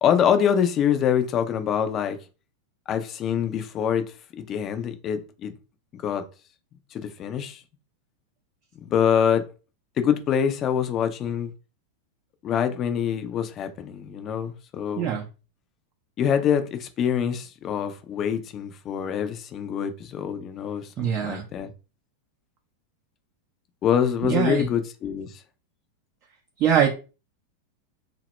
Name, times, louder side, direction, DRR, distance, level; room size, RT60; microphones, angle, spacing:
voice 1, 0.0-2.2 2.9-4.1 4.5-5.5 5.9-6.2 6.9-7.6 8.8-9.5 10.0-11.5 12.4-15.1 16.2-21.7 23.8-25.4, left 8 dB, 30° left, 0.4 m, -25 dB
voice 2, 21.0-21.4 24.2-24.6 26.6-26.9, right 9 dB, 40° right, 0.4 m, -22 dB
2.1 x 2.0 x 3.0 m
figure-of-eight pair, 90°, 0 cm